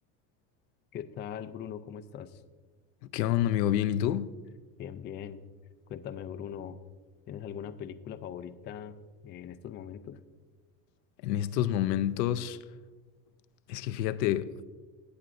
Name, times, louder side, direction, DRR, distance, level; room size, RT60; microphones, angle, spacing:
voice 1, 0.9-2.4 4.8-5.4 5.9-6.8 7.3-10.2, left 9 dB, 25° left, 0.3 m, -41 dB
voice 2, 3.1-4.3 11.2-12.6 13.7-14.6, left 11 dB, 85° left, 0.6 m, -28 dB
18.0 x 7.4 x 2.5 m
supercardioid pair, 105°, 49 cm